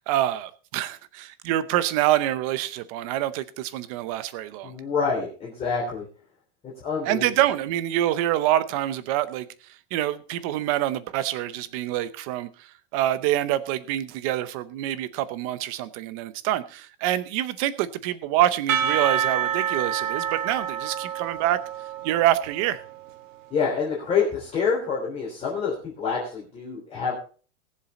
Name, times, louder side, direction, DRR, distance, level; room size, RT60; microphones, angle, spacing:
voice 1, 0.1-4.7 7.1-9.5 9.9-21.6 22.0-22.8, right 13 dB, 30° right, 0.7 m, -26 dB
voice 2, 4.6-6.1 6.6-7.3 23.5-27.1, left 5 dB, 15° left, 3.2 m, -27 dB
Percussion / Church bell, 18.7-23.2, right 8 dB, 85° right, 1.6 m, -28 dB
19.5 x 7.5 x 4.2 m
supercardioid pair, 170°, 38 cm